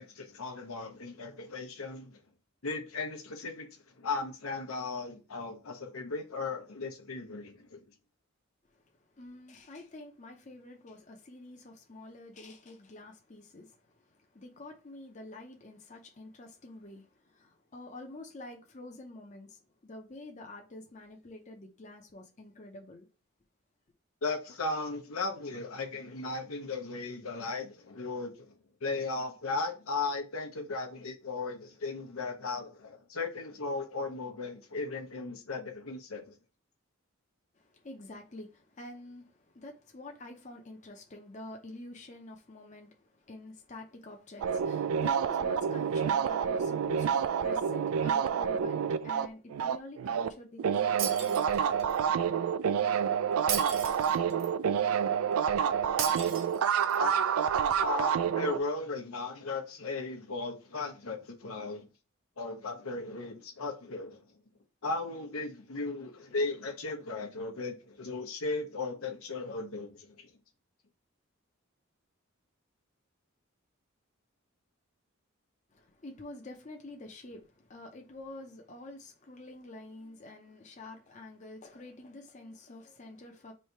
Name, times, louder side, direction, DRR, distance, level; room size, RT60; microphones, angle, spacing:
voice 1, 0.0-2.2 2.6-3.7 4.0-7.8 24.2-28.3 28.8-36.3 57.0-57.2 57.8-61.9 62.4-64.2 64.8-70.3, left 3 dB, 85° left, 0.9 m, -36 dB
voice 2, 9.2-13.8 14.3-23.1 37.6-51.7 75.7-83.5, left 2 dB, 35° left, 0.6 m, -47 dB
sound 1, 44.4-50.3 50.6-58.6, right 7 dB, 85° right, 0.3 m, -28 dB
Shatter, 51.0-52.0 53.5-54.5 56.0-57.0, right 8 dB, 70° right, 0.7 m, -35 dB
3.2 x 2.7 x 4.4 m
head